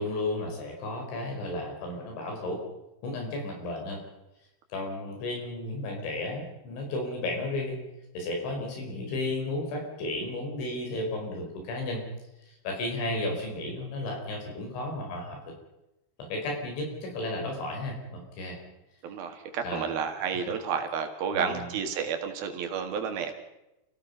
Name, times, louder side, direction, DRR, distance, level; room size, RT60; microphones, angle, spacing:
voice 1, 0.0-2.6 3.0-4.0 4.7-7.8 8.1-12.0 12.5-15.5 16.2-18.6 19.6-19.9 21.3-21.8, left 2 dB, 85° left, 1 dB, 7.4 m, -33 dB
voice 2, 19.0-23.3, right 6 dB, 60° right, 5 dB, 3.4 m, -31 dB
29.5 x 16.0 x 5.5 m, 0.94 s
omnidirectional pair, 5.2 m